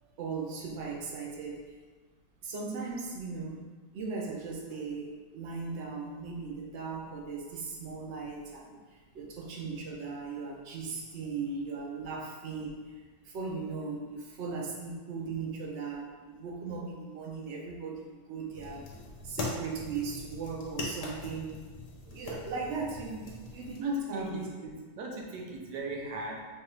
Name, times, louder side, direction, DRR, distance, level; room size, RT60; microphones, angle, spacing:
voice 1, 0.2-1.6 2.4-3.6 3.9-18.9 19.2-21.6 22.1-24.5, right 4 dB, 60° right, -1 dB, 0.7 m, -38 dB
sound 1, 18.5-23.8, left 3 dB, 80° left, 1.3 m, -41 dB
voice 2, 23.8-26.5, right 2 dB, 90° right, 0 dB, 1.3 m, -40 dB
4.4 x 2.4 x 3.2 m, 1.4 s
omnidirectional pair, 1.8 m